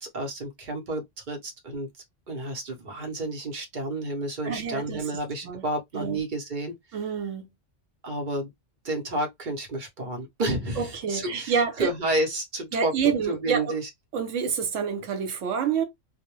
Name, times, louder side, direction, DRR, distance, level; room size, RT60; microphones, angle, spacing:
voice 1, 0.0-1.9 2.3-6.8 8.0-8.5 8.8-13.9, right 1 dB, 45° right, 0.8 m, -30 dB
voice 2, 4.4-5.0 5.4-5.6 5.9-6.2 6.9-7.5 10.8-11.9 12.7-13.7 14.1-15.8, right 6 dB, 80° right, 1.0 m, -28 dB
2.2 x 2.1 x 2.9 m
omnidirectional pair, 1.3 m